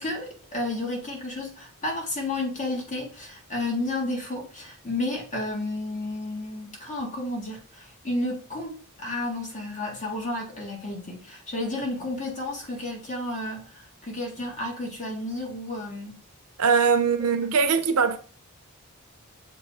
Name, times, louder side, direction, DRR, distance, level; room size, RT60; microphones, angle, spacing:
voice 1, 0.0-16.2 17.0-17.1, left 2 dB, 35° left, 1.9 m, -32 dB
voice 2, 16.6-18.2, right 5 dB, 85° right, 0.8 m, -21 dB
6.8 x 3.6 x 4.3 m
head